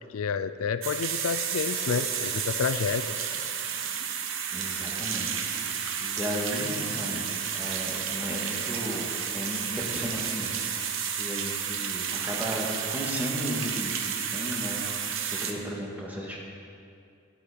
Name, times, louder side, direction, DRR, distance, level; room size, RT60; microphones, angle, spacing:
voice 1, 0.1-3.3, left 6 dB, 85° left, 13 dB, 0.4 m, -29 dB
sound 1, 0.8-15.5, right 7 dB, 65° right, 1.0 m, -31 dB
voice 2, 4.5-16.4, equal, 10° right, -4 dB, 1.9 m, -35 dB
13.0 x 10.5 x 5.1 m, 2.5 s
head